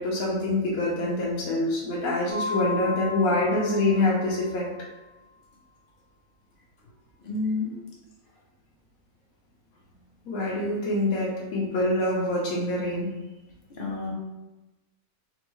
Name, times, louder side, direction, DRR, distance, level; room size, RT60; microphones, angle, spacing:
voice 1, 0.0-4.7 10.3-13.1, left 2 dB, 80° left, -5 dB, 1.1 m, -25 dB
Mallet percussion, 2.3-4.9, left 4 dB, 15° left, 0.9 m, -35 dB
voice 2, 7.2-7.8 13.8-14.1, left 3 dB, 50° left, -3 dB, 0.7 m, -29 dB
4.3 x 2.2 x 3.0 m, 1.1 s
omnidirectional pair, 1.5 m